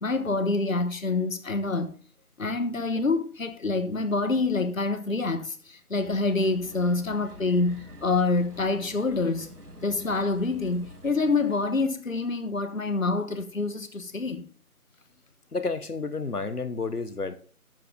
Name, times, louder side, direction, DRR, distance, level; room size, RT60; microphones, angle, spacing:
voice 1, 0.0-1.9 2.4-9.5 9.8-14.4, left 3 dB, 60° left, 1.2 m, -26 dB
sound 1, 6.0-11.7, equal, 90° right, 2.9 m, -47 dB
voice 2, 15.5-17.3, left 4 dB, 85° left, 1.1 m, -30 dB
12.5 x 7.1 x 3.8 m
figure-of-eight pair, 165°, 45 cm